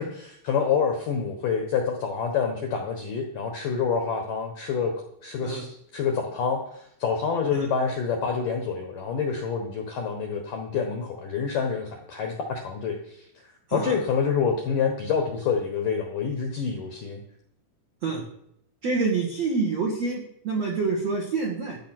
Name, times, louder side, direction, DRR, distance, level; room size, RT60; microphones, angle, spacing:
voice 1, 0.0-4.9 5.2-13.3 13.7-17.2, left 6 dB, 75° left, 3 dB, 1.9 m, -27 dB
voice 2, 18.8-21.8, right 4 dB, 75° right, 0 dB, 1.5 m, -27 dB
13.0 x 9.5 x 6.0 m, 0.73 s
omnidirectional pair, 5.9 m